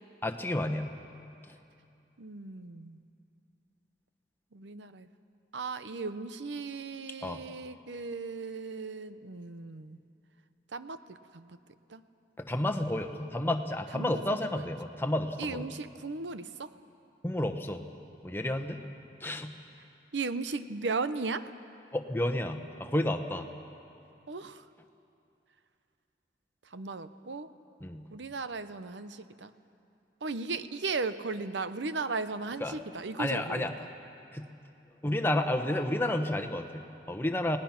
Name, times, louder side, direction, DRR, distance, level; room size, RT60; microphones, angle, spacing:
voice 1, 0.2-0.9 7.2-7.4 12.4-15.7 17.2-17.8 18.2-18.8 19.2-19.5 21.9-23.5 27.8-28.0 32.6-32.8 33.2-33.7 34.3-34.5 35.0-37.6, left 1 dB, 10° left, 5 dB, 1.0 m, -31 dB
voice 2, 2.2-3.0 4.5-5.1 5.5-10.0 10.7-11.6 11.9-12.0 13.9-14.7 15.4-16.7 20.1-21.4 24.3-24.6 26.7-27.5 28.1-29.5 30.2-33.9, right 4 dB, 80° right, 12 dB, 0.8 m, -36 dB
30.0 x 19.0 x 6.0 m, 2.7 s
head